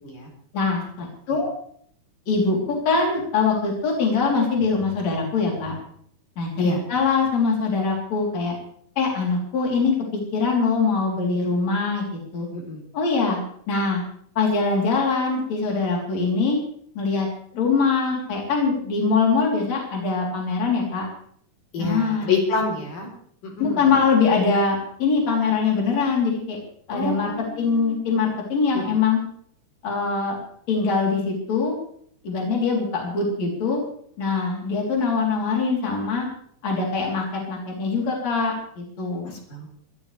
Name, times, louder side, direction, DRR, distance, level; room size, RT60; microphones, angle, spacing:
voice 1, 0.5-1.5 2.3-5.8 6.4-8.6 9.0-12.5 12.9-13.4 13.7-14.0 14.4-16.6 16.9-17.3 17.5-21.1 21.8-22.3 23.6-26.6 26.9-27.3 27.6-29.2 29.8-30.4 30.7-31.7 32.2-33.8 34.2-36.3 36.6-39.3, left 4 dB, 55° left, -2 dB, 4.8 m, -23 dB
voice 2, 21.7-23.1 23.4-23.8 26.9-28.1 28.7-28.8 39.3-39.7, left 4 dB, 75° left, 0 dB, 5.4 m, -27 dB
26.0 x 13.5 x 3.4 m, 0.62 s
omnidirectional pair, 3.7 m